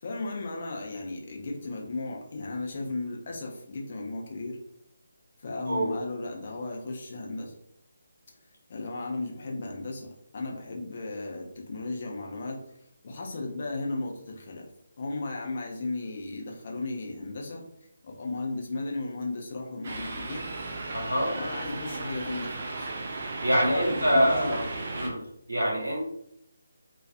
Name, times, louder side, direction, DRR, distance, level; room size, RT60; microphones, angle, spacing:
voice 1, 0.0-4.6 5.4-7.5 8.7-12.6 13.0-14.7 15.0-17.7 18.0-20.4 21.3-22.9 23.6-24.6, left 2 dB, 45° left, 0 dB, 0.5 m, -35 dB
sound 1, 19.8-25.1, right 2 dB, 45° right, 0.4 m, -35 dB
voice 2, 20.9-21.3 23.4-24.6 24.9-25.2 25.5-26.0, equal, 85° right, -3 dB, 1.1 m, -25 dB
2.4 x 2.3 x 2.4 m, 0.73 s
figure-of-eight pair, 150°, 0 cm